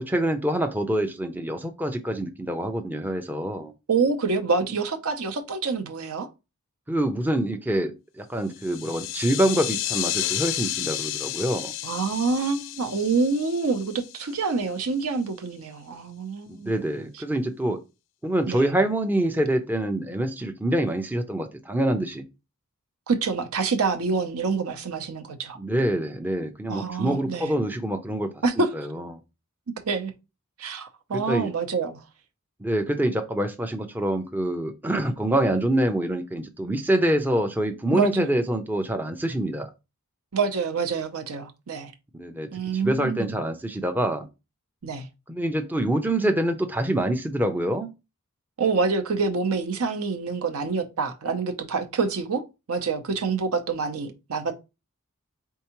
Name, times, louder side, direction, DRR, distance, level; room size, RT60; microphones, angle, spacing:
voice 1, 0.0-3.7 6.9-11.7 16.5-17.8 18.2-22.2 25.6-28.3 28.7-29.1 31.3-31.5 32.6-39.7 42.1-44.2 45.3-47.9, right 1 dB, 10° right, 0.4 m, -26 dB
voice 2, 3.9-6.3 11.8-16.8 18.5-18.7 23.1-25.6 26.7-27.5 28.4-28.7 29.9-30.1 30.6-32.0 37.9-38.3 40.3-41.9 42.5-43.3 44.8-45.1 48.6-52.4 52.7-54.5, right 4 dB, 70° right, 0.7 m, -26 dB
sound 1, 8.5-14.6, left 12 dB, 60° left, 0.4 m, -32 dB
4.6 x 3.5 x 2.9 m
head